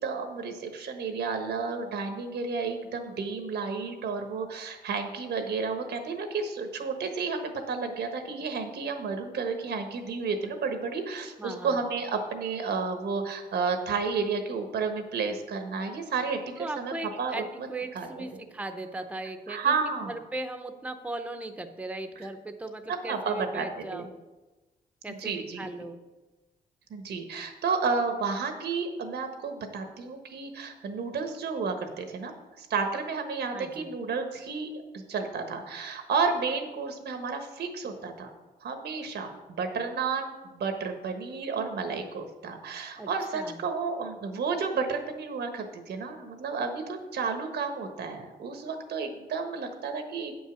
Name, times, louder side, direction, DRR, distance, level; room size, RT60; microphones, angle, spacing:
voice 1, 0.0-17.4 17.9-18.1 18.3-18.4 19.5-20.1 22.9-23.7 23.9-24.1 25.1-25.7 26.9-38.3 38.6-50.4, right 5 dB, 85° right, 6 dB, 1.3 m, -31 dB
voice 2, 11.4-11.8 16.6-24.1 25.0-26.0 33.5-33.9 43.0-43.6, right 2 dB, 10° right, 7 dB, 0.7 m, -38 dB
8.5 x 5.4 x 6.2 m, 1.1 s
cardioid pair, 115°, 17 cm